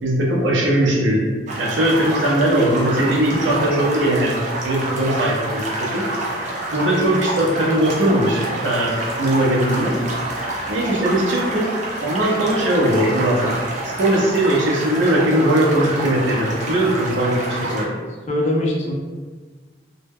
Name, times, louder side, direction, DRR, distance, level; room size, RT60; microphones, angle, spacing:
voice 1, 0.0-1.3 1.6-6.0 6.7-10.0 10.7-11.7 12.0-13.5 13.8-17.9, right 1 dB, 90° right, -3 dB, 0.6 m, -19 dB
sound 1, 1.5-17.8, right 2 dB, 40° right, 0.4 m, -27 dB
voice 2, 17.5-18.0 18.3-18.9, left 1 dB, 40° left, -2 dB, 0.3 m, -23 dB
2.1 x 2.1 x 3.3 m, 1.4 s
head